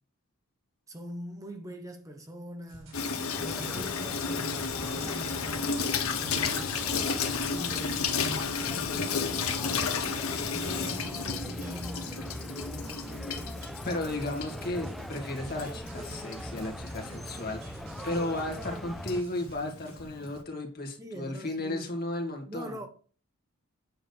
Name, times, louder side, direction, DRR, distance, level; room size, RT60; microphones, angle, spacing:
voice 1, 0.9-3.0 3.4-7.0 7.5-9.3 10.5-13.6 21.0-22.0 22.5-22.9, equal, 15° right, 0.9 m, -43 dB
sound 1, 2.7-20.4, right 1 dB, 80° right, 4.2 m, -52 dB
Water tap faucet / Sink (filling or washing), 2.9-20.4, left 5 dB, 75° left, 1.3 m, -33 dB
sound 2, 3.3-19.2, equal, ahead, 0.3 m, -42 dB
voice 2, 13.8-22.8, left 1 dB, 45° left, 2.2 m, -34 dB
8.9 x 3.8 x 7.0 m
head